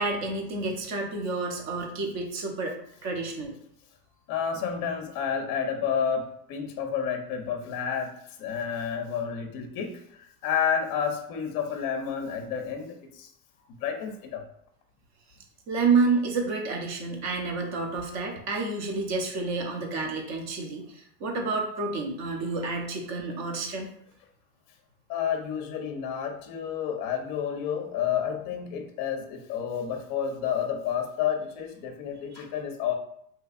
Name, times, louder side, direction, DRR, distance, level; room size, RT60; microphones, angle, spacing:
voice 1, 0.0-2.8 3.0-3.5 15.7-23.9 32.3-32.4, right 3 dB, 35° right, 2 dB, 0.7 m, -29 dB
voice 2, 4.3-8.1 8.4-13.3 13.8-14.4 25.1-32.9, left 7 dB, 40° left, 5 dB, 0.6 m, -30 dB
3.2 x 2.8 x 2.4 m, 0.69 s
supercardioid pair, 135°, 49 cm